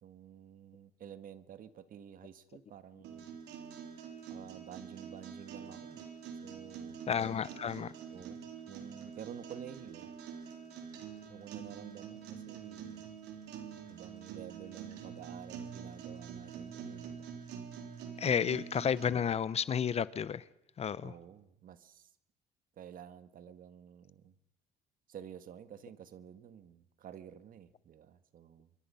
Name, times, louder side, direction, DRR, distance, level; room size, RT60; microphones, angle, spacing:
voice 1, 0.0-3.4 4.3-6.0 6.4-7.0 8.1-10.1 11.3-13.1 13.9-17.4 21.0-22.1 22.8-24.3 25.1-28.7, right 9 dB, 55° right, 1.5 m, -51 dB
sound 1, 3.0-19.1, right 7 dB, 85° right, 3.7 m, -46 dB
voice 2, 7.1-7.9 18.2-20.4 20.8-21.1, left 7 dB, 40° left, 0.8 m, -31 dB
26.5 x 24.0 x 5.7 m
cardioid pair, 110°, 17 cm